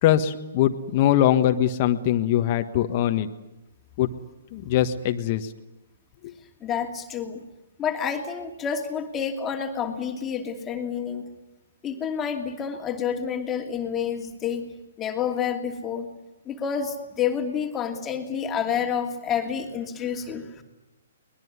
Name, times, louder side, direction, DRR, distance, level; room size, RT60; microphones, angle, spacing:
voice 1, 0.0-3.3 4.0-4.1 4.5-5.5 6.2-6.3, left 11 dB, 40° left, 7 dB, 1.5 m, -22 dB
voice 2, 6.6-7.4 7.8-11.2 11.8-14.6 15.0-16.1 16.5-20.6, left 7 dB, 20° left, 3 dB, 2.6 m, -29 dB
23.5 x 20.5 x 9.7 m, 0.96 s
hypercardioid pair, 130°, 0 cm